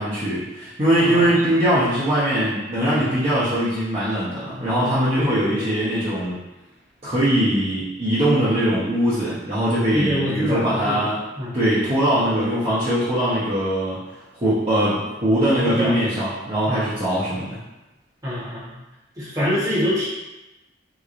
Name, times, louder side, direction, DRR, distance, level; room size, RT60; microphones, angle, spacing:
voice 1, 0.0-6.4 7.0-11.2 11.5-14.0 14.4-17.6, right 1 dB, 35° right, -11 dB, 0.8 m, -21 dB
voice 2, 5.2-5.6 9.9-11.0 11.3-11.5 15.6-15.9 16.7-16.8 18.2-18.7 19.2-20.1, equal, 20° right, -9 dB, 1.1 m, -25 dB
3.7 x 3.0 x 2.5 m, 1.0 s
head